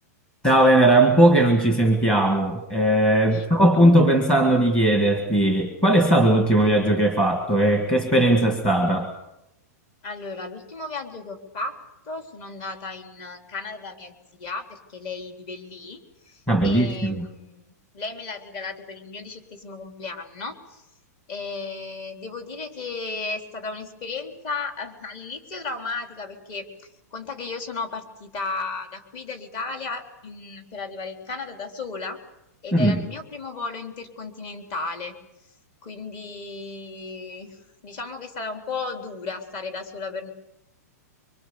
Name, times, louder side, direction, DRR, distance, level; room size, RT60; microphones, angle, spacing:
voice 1, 0.4-9.1 16.5-17.3 32.7-33.0, right 1 dB, 10° left, 2 dB, 1.9 m, -18 dB
voice 2, 10.0-11.8 12.1-17.6 17.9-20.8 21.3-32.2 32.6-35.1 35.8-37.6 37.8-40.3, left 3 dB, 30° left, 4 dB, 3.7 m, -34 dB
25.0 x 24.5 x 7.0 m, 0.88 s
supercardioid pair, 175°, 9 cm